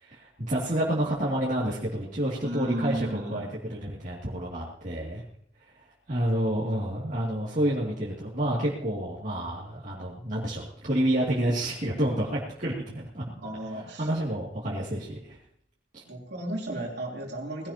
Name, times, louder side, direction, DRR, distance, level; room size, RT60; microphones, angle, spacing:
voice 1, 0.0-5.2 6.1-13.2 14.0-15.4 15.9-16.0, right 1 dB, 40° right, -7 dB, 2.6 m, -29 dB
voice 2, 2.4-3.5 13.4-14.1 16.1-17.7, right 1 dB, 55° right, -2 dB, 3.5 m, -34 dB
19.5 x 17.0 x 2.9 m, 0.67 s
head